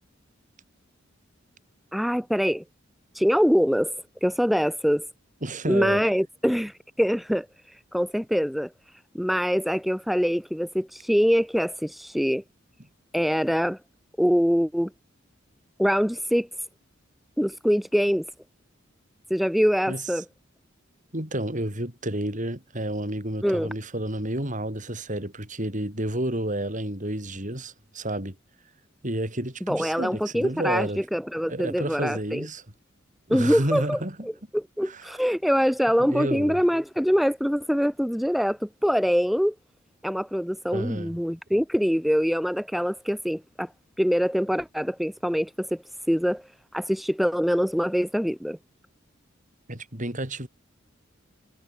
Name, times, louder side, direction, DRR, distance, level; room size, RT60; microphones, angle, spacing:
voice 1, 1.9-2.6 3.2-3.9 4.2-5.1 5.7-6.7 7.0-7.5 7.9-8.7 9.1-12.4 13.1-13.8 14.2-14.9 15.8-16.5 17.4-18.3 19.3-20.2 23.4-23.7 29.7-32.5 33.3-39.6 40.0-43.7 44.0-45.8 46.1-46.5 46.7-48.6, equal, ahead, 5.2 m, -24 dB
voice 2, 5.4-6.0 19.9-20.0 21.1-28.4 29.0-31.0 31.5-32.6 33.3-34.3 34.8-35.0 36.0-36.6 40.7-41.2 49.7-50.5, right 1 dB, 40° right, 7.3 m, -30 dB
head